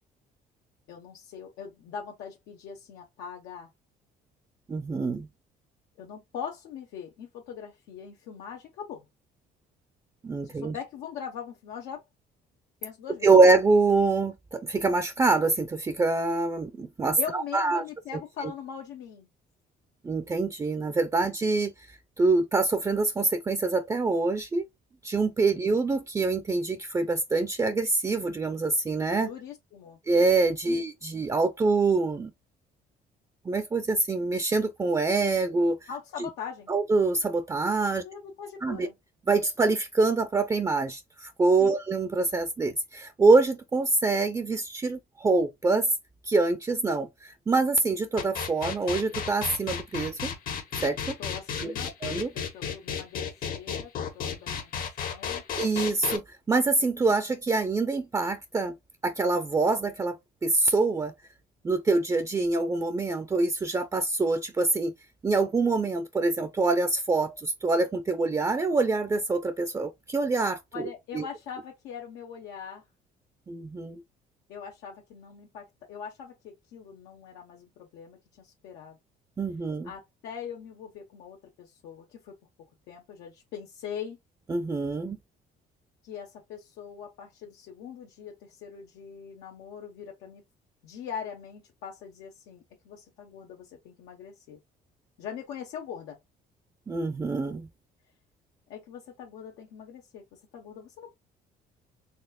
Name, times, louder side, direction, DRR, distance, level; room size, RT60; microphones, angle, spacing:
voice 1, 0.9-3.7 6.0-9.1 10.4-12.0 12.8-13.3 17.2-19.3 25.5-25.6 29.2-30.0 30.7-30.8 35.9-36.7 38.0-38.9 41.6-41.8 51.2-51.9 52.3-54.7 55.0-55.4 70.7-72.8 74.5-79.0 79.8-82.3 82.9-84.2 86.0-90.4 90.8-94.6 95.2-96.2 98.7-101.1, left 7 dB, 90° left, 1.0 m, -41 dB
voice 2, 4.7-5.3 10.2-10.8 13.2-17.8 20.0-24.7 25.0-29.3 30.1-32.3 33.5-35.9 36.7-38.0 38.6-38.9 39.3-45.9 46.2-50.3 50.8-51.2 51.6-51.7 52.0-52.3 55.6-58.7 59.0-60.2 60.4-61.1 61.6-64.9 65.2-71.3 73.5-74.0 79.4-79.9 84.5-85.2 96.9-97.7, right 3 dB, 20° right, 0.5 m, -25 dB
sound 1, 48.2-56.2, left 7 dB, 60° left, 1.0 m, -33 dB
4.2 x 3.3 x 2.3 m
cardioid pair, 110°, 17 cm